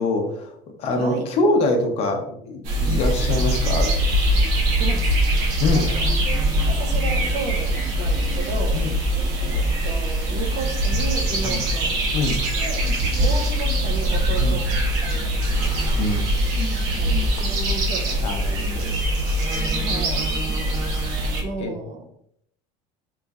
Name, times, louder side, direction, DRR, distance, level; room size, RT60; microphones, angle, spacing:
voice 1, 0.0-3.9 5.6-5.9 8.7-9.0 11.4-11.6 12.1-12.4 14.4-14.6 16.0-16.3 18.2-18.9 21.6-21.7, left 2 dB, 40° left, 4 dB, 0.6 m, -24 dB
voice 2, 1.0-1.3 4.8-5.2 5.7-6.1 6.7-8.9 9.5-11.9 12.5-12.9 13.2-14.8 15.0-15.7 17.0-18.3 19.8-20.3 21.4-22.1, right 3 dB, 45° right, 4 dB, 0.5 m, -33 dB
sound 1, 2.6-21.4, right 1 dB, 80° right, 0.9 m, -22 dB
3.6 x 3.0 x 2.3 m, 0.70 s
cardioid pair, 170°, 16 cm